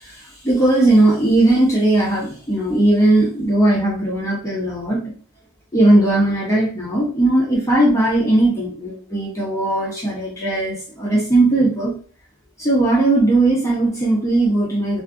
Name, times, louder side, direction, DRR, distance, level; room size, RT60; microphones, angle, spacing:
voice 1, 0.4-5.0 5.7-11.9 12.6-15.0, right 2 dB, 15° left, -6 dB, 0.6 m, -17 dB
2.5 x 2.4 x 2.4 m, 0.43 s
head